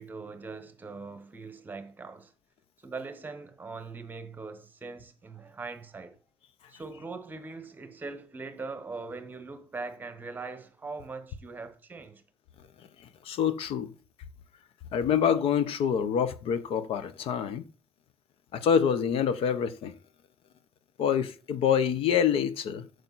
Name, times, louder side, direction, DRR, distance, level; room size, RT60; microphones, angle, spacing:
voice 1, 0.0-2.3 2.8-6.2 6.7-12.2, right 4 dB, 20° right, 1.1 m, -41 dB
voice 2, 13.3-13.9 14.9-17.6 18.5-19.9 21.0-22.8, left 8 dB, 70° left, 0.9 m, -26 dB
8.9 x 6.7 x 4.1 m
cardioid pair, 175°, 10 cm